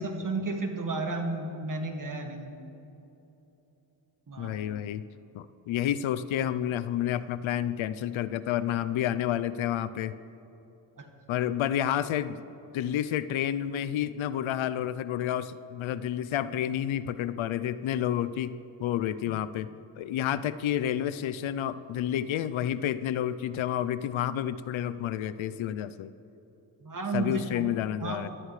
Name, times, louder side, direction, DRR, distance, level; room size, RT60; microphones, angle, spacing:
voice 1, 0.0-2.5 4.3-4.8 11.0-11.1 19.3-19.4 26.8-27.6 28.0-28.3, right 3 dB, 40° right, 3 dB, 2.1 m, -33 dB
voice 2, 4.4-5.0 5.3-10.1 11.3-12.4 12.7-19.7 20.0-26.1 27.1-28.3, left 11 dB, 70° left, 14 dB, 0.6 m, -30 dB
21.5 x 13.0 x 3.3 m, 3.0 s
cardioid pair, 65°, 49 cm